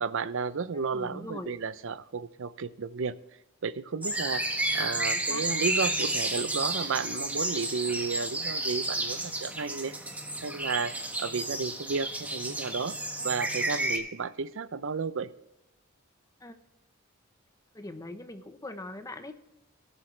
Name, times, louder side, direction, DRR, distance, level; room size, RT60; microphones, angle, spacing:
voice 1, 0.0-3.2 3.6-4.5 4.7-9.9 10.4-13.0 13.2-15.3, right 5 dB, 65° right, 15 dB, 0.6 m, -33 dB
voice 2, 0.7-1.5 4.8-5.4 16.4-16.6 17.7-19.3, left 2 dB, 15° left, 8 dB, 1.0 m, -42 dB
sound 1, 4.0-14.0, right 1 dB, 10° right, 1.5 m, -31 dB
18.5 x 8.1 x 3.2 m, 0.93 s
head